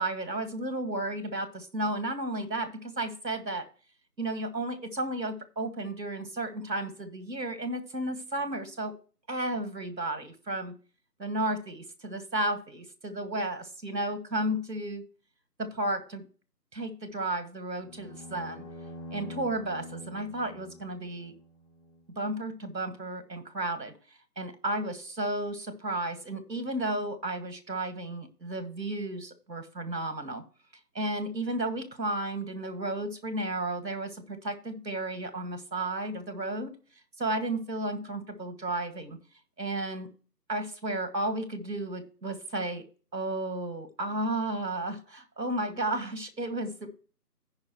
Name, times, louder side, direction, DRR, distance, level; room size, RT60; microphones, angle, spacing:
voice 1, 0.0-3.7 4.2-8.9 9.3-10.8 11.2-15.0 15.6-16.3 16.7-18.7 19.1-21.3 22.1-23.9 24.4-30.4 30.9-36.7 37.2-39.2 39.6-40.1 40.5-42.9 43.1-46.9, right 1 dB, 90° right, 9 dB, 2.0 m, -33 dB
sound 1, 17.7-22.0, left 1 dB, 15° left, 3.2 m, -45 dB
16.0 x 5.4 x 3.0 m, 0.39 s
figure-of-eight pair, 165°, 49 cm